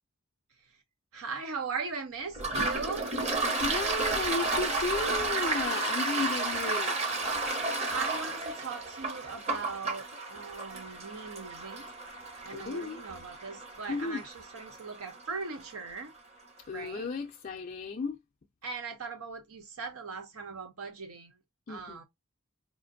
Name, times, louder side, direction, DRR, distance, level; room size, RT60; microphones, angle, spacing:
voice 1, 1.1-3.1 7.9-11.9 12.4-16.1 16.7-17.1 18.6-21.4 21.7-22.0, right 4 dB, 80° right, 0.7 m, -39 dB
Toilet flush, 2.3-15.7, right 3 dB, 30° right, 0.7 m, -32 dB
voice 2, 3.4-7.0 12.5-13.0 13.9-14.2 16.7-18.2 21.7-22.0, left 4 dB, 40° left, 0.4 m, -34 dB
4.9 x 2.5 x 2.5 m
head